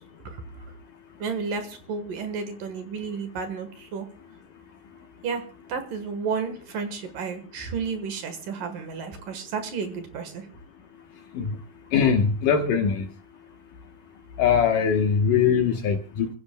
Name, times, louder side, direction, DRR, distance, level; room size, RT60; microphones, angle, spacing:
voice 1, 1.2-4.1 5.2-5.4 5.7-10.5, right 5 dB, 60° right, 2.6 m, -32 dB
voice 2, 11.9-13.1 14.4-16.3, left 6 dB, 65° left, 2.3 m, -21 dB
29.0 x 16.0 x 2.2 m
omnidirectional pair, 4.8 m